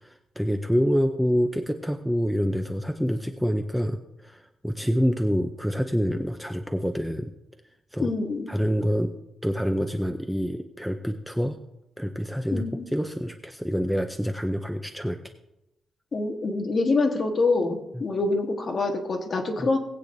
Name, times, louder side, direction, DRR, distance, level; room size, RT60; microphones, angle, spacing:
voice 1, 0.0-7.3 7.9-8.1 8.5-9.1 9.4-11.6 12.0-12.6 12.9-15.2 17.9-18.0 19.6-19.7, equal, ahead, 6 dB, 0.5 m, -26 dB
voice 2, 8.0-8.5 12.5-12.8 16.1-19.8, left 3 dB, 35° left, 3 dB, 1.4 m, -25 dB
20.0 x 8.5 x 2.6 m, 0.93 s
wide cardioid pair, 155°, 0 cm